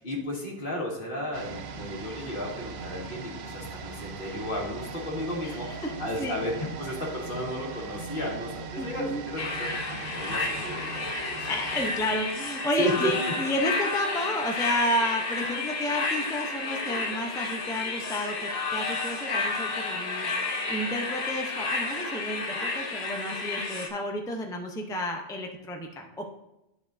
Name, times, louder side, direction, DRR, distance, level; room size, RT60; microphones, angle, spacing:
voice 1, 0.0-5.7 6.0-11.0 11.4-11.5 12.8-13.1, equal, 60° left, -2 dB, 1.9 m, -33 dB
sound 1, 1.3-13.1 13.3-13.4, right 5 dB, 85° right, 0.9 m, -40 dB
sound 2, 5.1-22.9, right 1 dB, 55° right, 1.0 m, -49 dB
voice 2, 5.4-5.9 6.2-6.4 8.8-9.2 11.4-26.3, left 1 dB, 5° left, 2 dB, 0.6 m, -31 dB
sound 3, 9.4-23.9, left 3 dB, 85° left, 1.2 m, -31 dB
12.0 x 4.8 x 2.6 m, 0.90 s
omnidirectional pair, 1.0 m